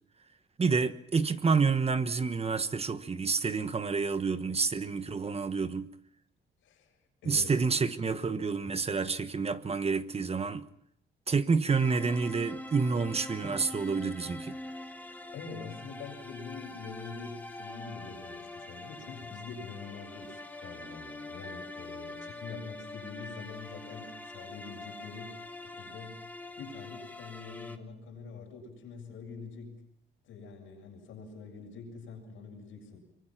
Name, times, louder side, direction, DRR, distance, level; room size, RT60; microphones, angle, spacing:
voice 1, 0.6-5.9 7.2-10.7 11.3-14.6, right 4 dB, 30° right, 1.2 m, -29 dB
voice 2, 7.2-7.5 15.3-26.3 26.6-29.8 30.2-33.0, left 5 dB, 85° left, 7.4 m, -45 dB
sound 1, 11.7-27.8, left 2 dB, 10° left, 2.0 m, -44 dB
24.5 x 23.5 x 6.0 m
cardioid pair, 90°, 20 cm